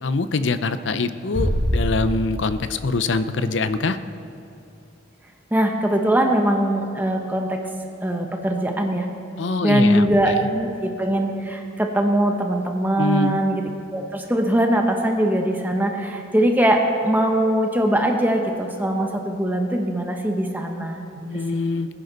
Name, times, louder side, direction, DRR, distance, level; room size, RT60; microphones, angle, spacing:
voice 1, 0.0-4.0 9.4-10.5 13.0-13.4 21.3-21.9, left 3 dB, 70° left, 12 dB, 0.6 m, -24 dB
sound 1, 1.3-3.3, equal, 85° left, 3.9 m, -25 dB
voice 2, 5.5-7.6 8.0-9.1 9.6-13.6 13.9-21.2 21.5-21.6, right 1 dB, 10° right, 3 dB, 0.9 m, -21 dB
20.0 x 10.0 x 4.0 m, 2.6 s
head